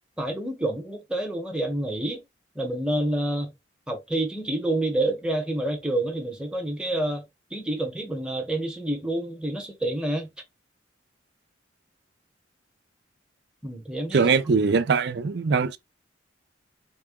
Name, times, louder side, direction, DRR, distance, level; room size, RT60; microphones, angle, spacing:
voice 1, 0.2-2.2 2.5-3.5 3.9-7.2 7.5-10.3 13.6-14.3, right 1 dB, 5° right, 0.8 m, -28 dB
voice 2, 14.1-15.8, right 5 dB, 60° right, 0.4 m, -22 dB
3.7 x 2.2 x 3.5 m
head